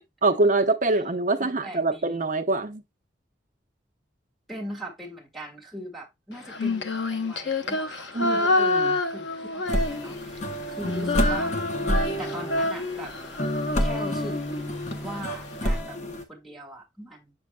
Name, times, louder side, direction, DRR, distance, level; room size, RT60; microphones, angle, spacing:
voice 1, 0.2-2.8 8.1-9.0, right 2 dB, 45° right, 0.8 m, -24 dB
voice 2, 1.4-2.1 4.5-8.4 9.1-11.5 12.2-13.1 13.8-14.4 15.0-17.3, equal, ahead, 1.9 m, -40 dB
Female singing, 6.5-10.4 10.7-14.9, left 2 dB, 75° left, 0.8 m, -27 dB
sound 1, 9.7-16.2, equal, 40° left, 0.9 m, -29 dB
7.5 x 6.3 x 2.3 m
head